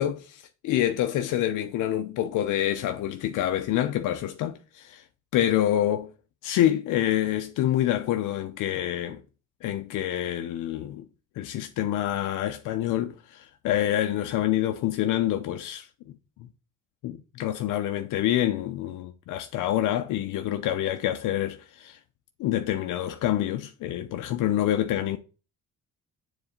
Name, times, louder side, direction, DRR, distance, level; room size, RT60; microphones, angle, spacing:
voice 1, 0.0-5.0 5.3-6.1 6.4-9.2 9.6-11.1 11.4-15.9 17.0-22.0 22.4-25.2, left 12 dB, 90° left, 0.7 m, -27 dB
7.2 x 4.1 x 6.5 m
cardioid pair, 90°, 30 cm